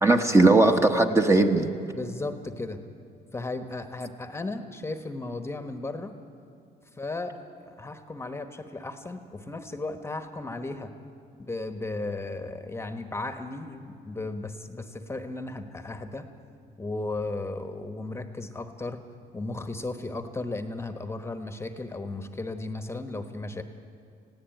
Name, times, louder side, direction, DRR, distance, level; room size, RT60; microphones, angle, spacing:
voice 1, 0.0-1.7, right 2 dB, 15° right, 5 dB, 1.2 m, -19 dB
voice 2, 1.9-2.8 3.3-6.1 6.9-10.9 11.4-16.3 16.8-19.0 19.3-23.6, left 2 dB, 15° left, 8 dB, 1.2 m, -35 dB
20.0 x 16.0 x 9.1 m, 2.5 s
cardioid pair, 110°, 17 cm